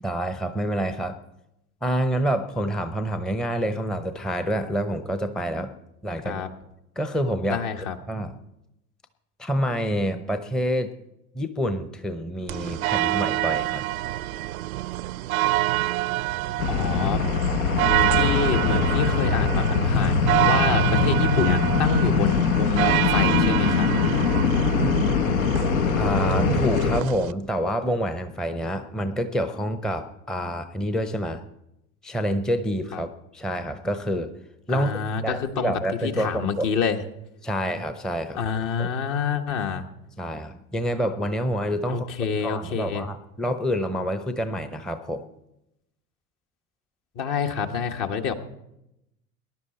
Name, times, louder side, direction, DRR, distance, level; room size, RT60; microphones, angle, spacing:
voice 1, 0.0-1.2 1.8-5.7 6.0-6.4 7.0-7.6 8.1-8.4 9.4-10.9 11.3-13.8 26.0-31.4 32.0-34.3 34.7-34.9 35.2-36.7 37.4-38.4 38.8-38.9 40.2-42.1 42.4-45.3, equal, ahead, 9 dB, 0.7 m, -27 dB
voice 2, 7.5-7.9 16.7-17.2 18.1-23.9 32.9-33.0 34.7-37.0 38.3-39.8 41.9-43.1 47.1-48.3, left 6 dB, 45° left, 6 dB, 1.5 m, -27 dB
sound 1, 12.5-27.3, right 16 dB, 70° right, 0.6 m, -27 dB
sound 2, 16.6-27.0, left 5 dB, 70° left, 1.1 m, -22 dB
19.0 x 11.0 x 4.3 m, 0.86 s
figure-of-eight pair, 75°, 43 cm